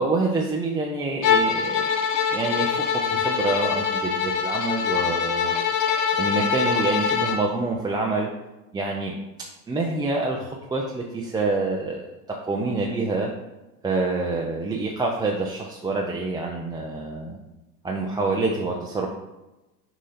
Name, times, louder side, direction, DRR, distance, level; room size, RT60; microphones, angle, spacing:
voice 1, 0.0-1.9 2.3-5.5 6.2-8.3 8.7-9.1 9.7-12.0 12.5-13.3 13.8-17.4 17.8-19.1, right 3 dB, 10° right, -2 dB, 0.5 m, -26 dB
Bowed string instrument, 1.2-7.5, left 6 dB, 40° left, 0.8 m, -24 dB
6.4 x 2.8 x 5.7 m, 1.0 s
hypercardioid pair, 100°, 48 cm